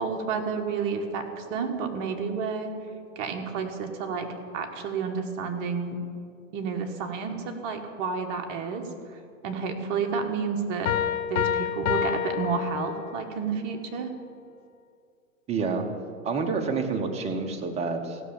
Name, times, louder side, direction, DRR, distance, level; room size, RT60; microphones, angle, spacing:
voice 1, 0.0-2.7 3.1-4.3 4.5-6.0 6.5-8.9 9.4-10.9 11.3-14.1, right 5 dB, 35° right, 4 dB, 1.3 m, -30 dB
Piano, 10.9-13.3, left 9 dB, 65° left, 0.9 m, -28 dB
voice 2, 15.5-15.9 16.2-18.2, right 4 dB, 15° right, 5 dB, 0.9 m, -28 dB
15.5 x 6.2 x 7.1 m, 2.3 s
hypercardioid pair, 140°, 42 cm